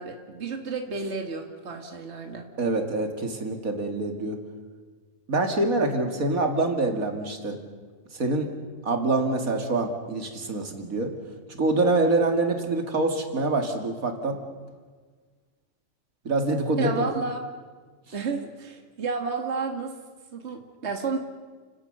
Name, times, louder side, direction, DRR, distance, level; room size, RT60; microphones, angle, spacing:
voice 1, 0.0-2.5 16.8-17.4 18.1-19.9 20.3-21.2, right 4 dB, 50° right, 4 dB, 2.1 m, -31 dB
voice 2, 2.6-4.4 5.3-7.6 8.1-8.5 8.8-11.1 11.5-14.4 16.2-17.1, right 2 dB, 85° right, 4 dB, 2.7 m, -25 dB
30.0 x 18.0 x 6.7 m, 1.5 s
omnidirectional pair, 1.4 m